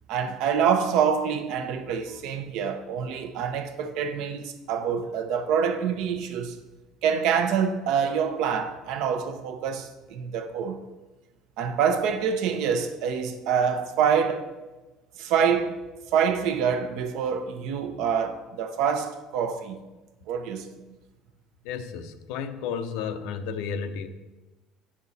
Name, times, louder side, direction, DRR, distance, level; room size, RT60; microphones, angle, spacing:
voice 1, 0.1-6.6 7.0-10.8 11.6-14.5 15.2-15.7 16.1-19.8 20.3-20.7, right 7 dB, 65° right, 0.8 m, -26 dB
voice 2, 21.6-24.1, left 6 dB, 85° left, 0.6 m, -32 dB
8.3 x 6.2 x 4.0 m
cardioid pair, 160°, 0 cm